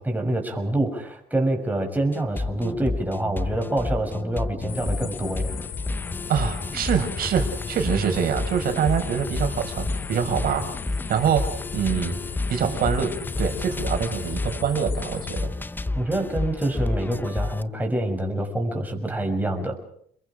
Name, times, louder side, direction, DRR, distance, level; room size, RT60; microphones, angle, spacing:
voice 1, 0.0-5.5 15.9-19.8, right 1 dB, 10° right, 2 dB, 6.4 m, -26 dB
sound 1, 2.1-17.6, left 2 dB, 10° left, 0.8 m, -31 dB
sound 2, 4.7-15.4, left 8 dB, 55° left, 2.9 m, -36 dB
voice 2, 6.3-10.7 11.1-12.2 12.5-15.5, right 7 dB, 60° right, 6 dB, 5.5 m, -25 dB
29.5 x 22.0 x 5.1 m, 0.66 s
cardioid pair, 110°, 17 cm